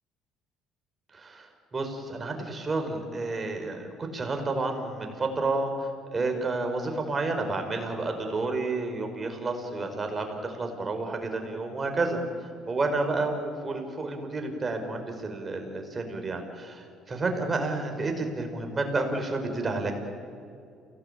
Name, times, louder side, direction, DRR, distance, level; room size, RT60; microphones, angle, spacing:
voice 1, 1.1-19.9, right 3 dB, 30° right, 4 dB, 5.1 m, -30 dB
27.5 x 18.0 x 8.9 m, 2.4 s
supercardioid pair, 75°, 0 cm